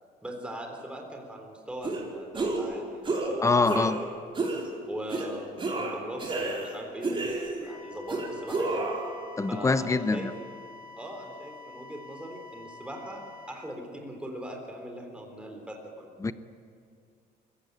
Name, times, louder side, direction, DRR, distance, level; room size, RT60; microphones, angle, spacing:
voice 1, 0.2-3.9 4.9-8.9 9.5-10.3 11.0-16.1, equal, 5° right, 2 dB, 3.7 m, -40 dB
sound 1, 1.8-2.0 2.3-2.7 3.0-3.3 3.6-4.0 4.4-4.6 5.1-5.3 5.6-6.7 7.0-7.7 8.1-9.0, right 3 dB, 30° right, 5.0 m, -30 dB
voice 2, 3.4-4.0 9.4-10.3 16.2-16.3, left 3 dB, 20° left, 13 dB, 0.8 m, -24 dB
sound 2, 7.6-13.5, left 4 dB, 45° left, 5.7 m, -48 dB
23.5 x 15.5 x 9.6 m, 2.3 s
cardioid pair, 110°, 17 cm